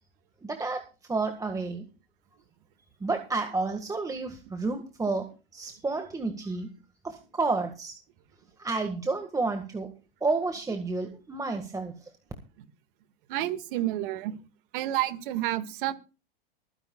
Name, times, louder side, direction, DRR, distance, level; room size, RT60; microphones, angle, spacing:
voice 1, 0.4-0.8 1.1-1.8 3.0-5.2 5.5-6.7 7.0-7.9 8.6-9.9 10.2-11.9, right 3 dB, 10° right, 5 dB, 1.7 m, -30 dB
voice 2, 13.3-14.4 14.7-15.9, right 14 dB, 60° right, 10 dB, 1.8 m, -29 dB
25.0 x 10.0 x 2.3 m, 0.32 s
hypercardioid pair, 115°, 29 cm